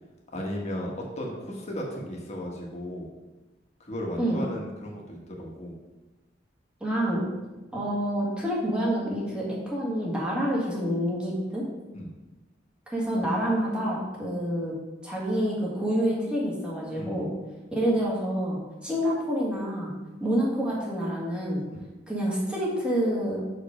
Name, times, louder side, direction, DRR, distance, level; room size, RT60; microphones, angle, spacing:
voice 1, 0.3-3.1 3.8-5.7 11.9-12.1 16.9-17.3 21.7-21.8, equal, 35° left, -1 dB, 1.5 m, -35 dB
voice 2, 6.8-7.2 7.7-11.6 12.9-14.7 15.0-17.3 17.7-19.9 20.2-21.6 22.1-23.4, equal, 5° right, -5 dB, 1.9 m, -27 dB
6.3 x 5.1 x 5.0 m, 1.1 s
head